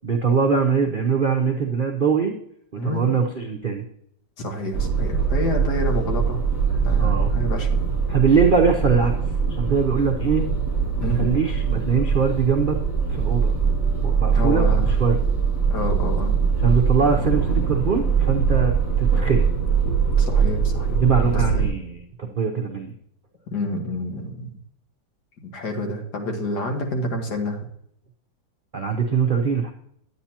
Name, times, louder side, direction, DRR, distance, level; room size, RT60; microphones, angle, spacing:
voice 1, 0.0-2.3 2.7-3.8 7.0-7.3 8.1-9.1 9.5-10.5 11.0-12.8 13.1-13.5 14.0-15.2 16.6-19.5 21.0-22.9 28.7-29.7, right 5 dB, 90° right, 1 dB, 0.4 m, -22 dB
voice 2, 2.8-3.1 4.4-7.7 11.0-11.3 14.3-15.0 15.7-16.4 20.2-21.0 21.3-21.7 23.5-24.6 25.5-27.6, equal, 60° left, 3 dB, 2.0 m, -28 dB
sound 1, 4.7-21.7, right 6 dB, 45° left, 2.8 m, -22 dB
9.5 x 9.3 x 2.8 m, 0.72 s
omnidirectional pair, 2.1 m